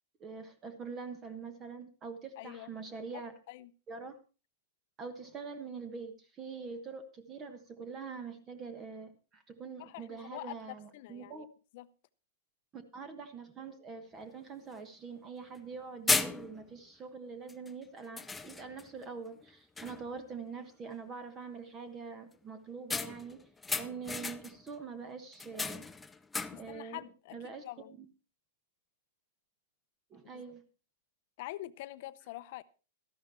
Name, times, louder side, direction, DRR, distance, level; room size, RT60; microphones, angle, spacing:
voice 1, 0.2-3.4 3.9-4.2 5.0-11.5 12.7-23.4 23.8-25.8 26.5-27.0 27.3-27.6 30.1-30.6, right 5 dB, 25° right, 1.3 m, -44 dB
voice 2, 2.4-2.7 3.1-3.2 3.5-3.7 9.8-11.5 11.7-11.9 26.5-27.4 27.6-27.9 30.3-30.4 31.4-32.6, left 17 dB, 55° left, 0.7 m, -45 dB
sound 1, 14.2-14.3 14.7-14.8 15.5-15.7 16.1-16.8 17.5-17.7 18.2-18.9 19.3-19.5 19.8-20.2 22.9-24.7 25.3-26.8, left 3 dB, 10° left, 0.5 m, -35 dB
13.0 x 11.0 x 4.3 m
hypercardioid pair, 140°, 0 cm